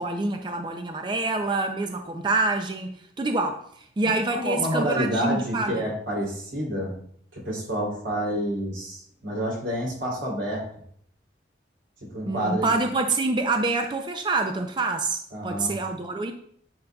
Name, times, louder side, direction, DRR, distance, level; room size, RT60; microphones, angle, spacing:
voice 1, 0.0-3.6 4.0-5.8 12.3-16.3, right 3 dB, 25° right, 5 dB, 0.4 m, -26 dB
voice 2, 4.3-7.0 7.3-10.7 12.0-12.7 15.3-15.7, equal, 90° right, -2 dB, 3.0 m, -28 dB
10.5 x 5.5 x 2.3 m, 0.65 s
head